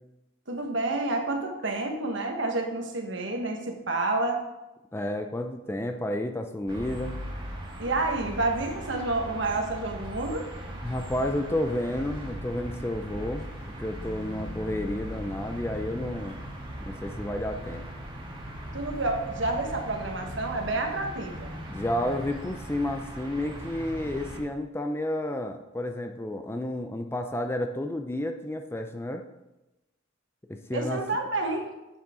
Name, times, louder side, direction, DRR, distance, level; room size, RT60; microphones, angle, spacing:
voice 1, 0.5-4.4 7.8-10.5 18.7-21.5 30.7-31.7, right 2 dB, 65° right, 2 dB, 1.4 m, -29 dB
voice 2, 4.9-7.2 10.8-13.5 13.8-16.4 16.9-17.8 21.7-29.2 30.5-31.0, left 1 dB, 10° left, 5 dB, 0.4 m, -31 dB
sound 1, 6.7-24.4, equal, 25° right, 1.6 m, -39 dB
9.4 x 7.4 x 3.7 m, 0.99 s
head